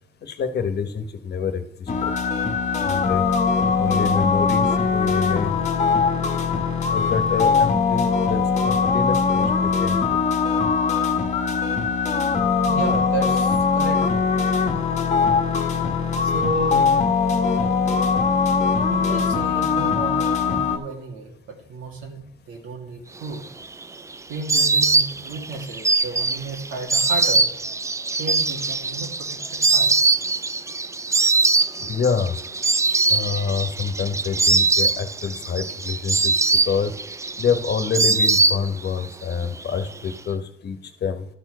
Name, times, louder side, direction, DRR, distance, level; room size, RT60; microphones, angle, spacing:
voice 1, 0.2-1.6 2.0-2.1 2.8-3.2 3.8-5.6 6.9-10.2 31.8-32.3 33.1-36.3 36.7-36.9 37.4-41.3, left 6 dB, 55° left, 9 dB, 1.3 m, -27 dB
sound 1, 1.9-20.8, left 5 dB, 35° left, 1.3 m, -21 dB
voice 2, 12.7-14.1 16.2-16.9 18.9-23.5 24.3-27.5 28.2-29.9, right 3 dB, 85° right, 2 dB, 2.4 m, -32 dB
Insect, 23.3-39.1 39.3-40.1, right 3 dB, 15° right, 0.4 m, -22 dB
12.5 x 4.6 x 6.3 m, 0.77 s
cardioid pair, 90°, 20 cm